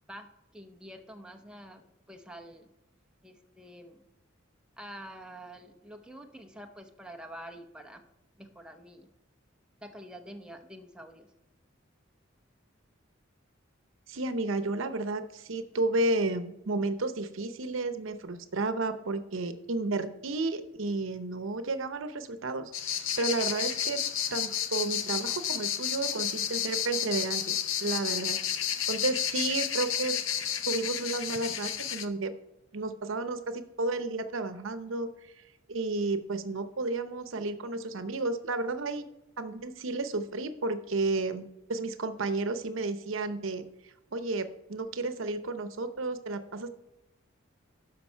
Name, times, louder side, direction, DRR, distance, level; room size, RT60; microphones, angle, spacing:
voice 1, 0.1-2.7 3.2-4.0 4.8-8.0 8.4-9.1 9.8-11.3, equal, 5° right, 4 dB, 0.7 m, -47 dB
voice 2, 14.1-24.0 24.3-30.2 30.7-32.3 32.7-35.1 35.7-39.1 39.4-43.6 44.1-46.7, right 2 dB, 75° right, 10 dB, 0.7 m, -32 dB
sound 1, 22.7-32.1, left 9 dB, 70° left, 0.7 m, -31 dB
12.5 x 5.3 x 4.5 m, 0.92 s
head